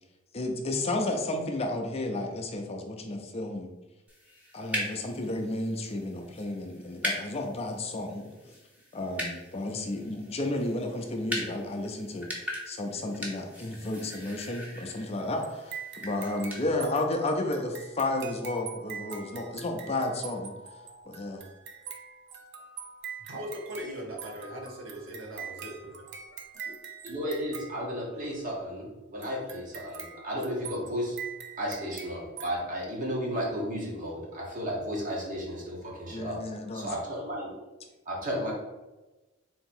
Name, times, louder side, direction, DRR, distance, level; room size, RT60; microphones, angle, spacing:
voice 1, 0.3-3.7 4.5-8.3 8.9-21.4 36.1-36.9, left 2 dB, 30° left, 3 dB, 0.5 m, -32 dB
sound 1, 4.1-16.6, left 1 dB, 5° right, 0.9 m, -40 dB
sound 2, 15.3-28.5 29.2-32.6, right 6 dB, 60° right, 0.5 m, -44 dB
voice 2, 23.2-26.1 26.6-26.7, equal, 85° right, 0 dB, 1.0 m, -40 dB
voice 3, 27.0-31.2 31.6-36.4 36.7-37.6 38.0-38.5, equal, 40° right, -3 dB, 1.3 m, -33 dB
3.8 x 2.9 x 4.4 m, 1.1 s
head